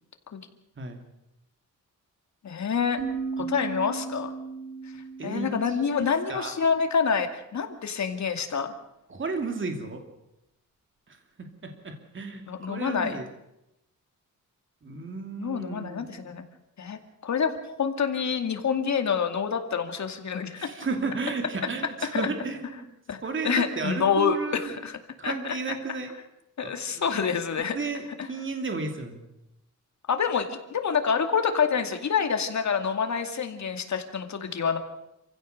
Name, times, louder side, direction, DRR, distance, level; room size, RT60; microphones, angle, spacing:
voice 1, 2.4-3.0 3.4-4.3 5.2-8.7 12.5-13.2 15.4-16.4 16.8-17.5 17.8-20.7 22.1-22.3 23.1-23.2 23.4-25.0 25.2-25.6 26.6-27.8 28.2-28.3 30.1-34.8, left 6 dB, 60° left, 6 dB, 2.4 m, -27 dB
sound 1, 3.0-6.6, right 5 dB, 80° right, 4.3 m, -36 dB
voice 2, 5.2-5.5 6.3-6.5 9.1-10.0 11.1-13.2 14.8-16.3 20.6-22.9 23.2-24.8 25.2-26.1 26.6-27.2 27.7-29.3, right 4 dB, 40° right, 5 dB, 2.7 m, -33 dB
28.0 x 16.0 x 6.6 m, 0.87 s
wide cardioid pair, 130°, 32 cm